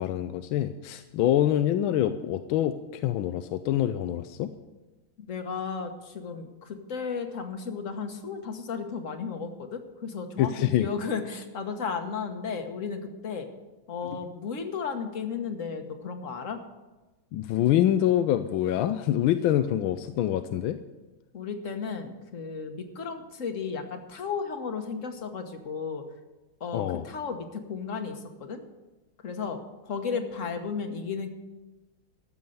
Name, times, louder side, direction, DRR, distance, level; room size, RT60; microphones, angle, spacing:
voice 1, 0.0-4.5 10.4-10.9 17.3-20.8 26.7-27.0, left 12 dB, 80° left, 9 dB, 1.4 m, -25 dB
voice 2, 5.3-13.5 13.9-16.6 21.3-26.0 26.6-28.6 29.2-31.3, left 5 dB, 45° left, 6 dB, 1.4 m, -34 dB
14.0 x 7.2 x 7.8 m, 1.1 s
omnidirectional pair, 2.3 m